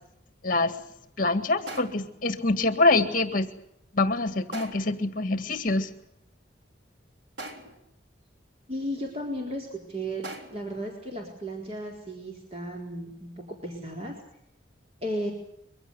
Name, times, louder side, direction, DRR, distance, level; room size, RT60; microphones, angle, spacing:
voice 1, 0.4-0.8 1.2-3.5 3.9-5.9, left 2 dB, 45° left, 9 dB, 1.9 m, -25 dB
sound 1, 1.7-2.2 4.5-5.0 7.4-7.9 10.2-10.7, right 2 dB, 65° right, 3.6 m, -41 dB
voice 2, 8.7-14.2 15.0-15.3, equal, 35° right, 0 dB, 4.2 m, -34 dB
24.0 x 16.5 x 9.7 m, 0.75 s
head